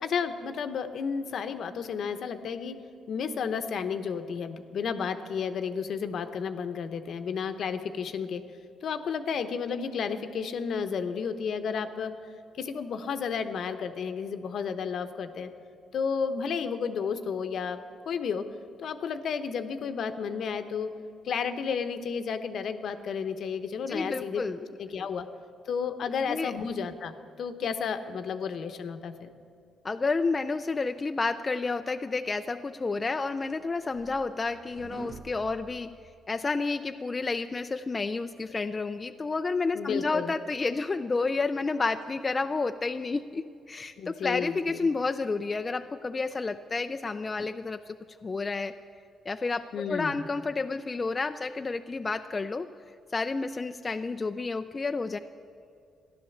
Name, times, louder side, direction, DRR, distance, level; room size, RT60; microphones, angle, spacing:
voice 1, 0.0-2.8 3.1-8.4 8.8-12.1 12.6-15.5 15.9-17.8 18.1-18.5 18.8-20.9 21.2-24.4 24.8-25.3 25.7-27.1 27.4-29.3 39.7-40.3 44.0-44.9 49.7-50.3, left 6 dB, 65° left, 9 dB, 0.9 m, -32 dB
voice 2, 23.9-24.6 26.3-26.5 29.8-35.9 36.3-48.8 49.3-52.7 53.1-55.2, left 3 dB, 30° left, 8 dB, 0.4 m, -30 dB
sound 1, 32.9-36.6, right 4 dB, 45° right, 0.8 m, -48 dB
14.0 x 11.0 x 7.1 m, 2.3 s
cardioid pair, 90°, 0 cm